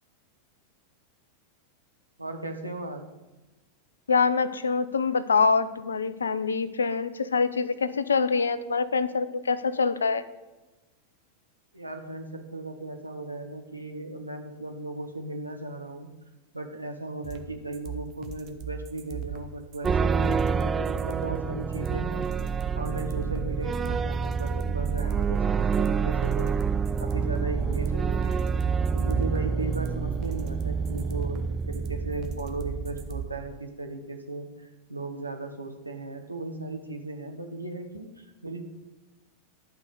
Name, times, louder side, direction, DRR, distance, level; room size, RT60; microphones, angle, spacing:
voice 1, 2.2-3.0 11.7-16.1 16.5-22.3 22.7-26.6 27.0-28.5 28.9-38.6, right 2 dB, 85° right, 4 dB, 1.4 m, -36 dB
voice 2, 4.1-10.2, left 5 dB, 70° left, 15 dB, 0.6 m, -25 dB
sound 1, 17.2-33.2, right 8 dB, 35° right, 1.2 m, -38 dB
sound 2, 19.8-33.6, right 5 dB, 20° right, 0.3 m, -28 dB
12.0 x 5.3 x 8.1 m, 1.1 s
figure-of-eight pair, 90°, 0 cm